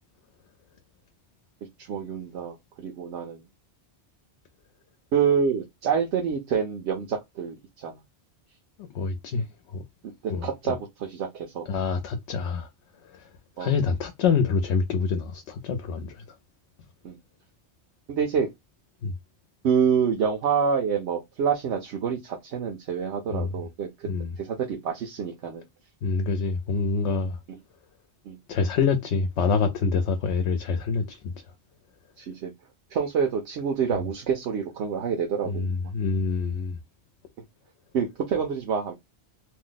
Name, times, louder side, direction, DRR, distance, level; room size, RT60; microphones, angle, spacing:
voice 1, 1.8-3.5 5.1-8.0 10.2-11.7 13.6-13.7 17.0-17.2 18.1-18.5 19.6-24.1 24.4-25.6 28.3-28.4 32.2-32.5 32.9-35.7 37.9-38.9, right 6 dB, 80° right, 0.9 m, -27 dB
voice 2, 8.8-9.4 9.7-9.8 10.3-10.8 11.7-12.7 13.0-13.3 13.6-16.2 19.0-19.1 23.3-23.5 24.1-24.3 26.0-27.4 28.5-31.3 35.4-36.8, left 5 dB, 80° left, 0.9 m, -26 dB
2.7 x 2.1 x 3.7 m
omnidirectional pair, 1.2 m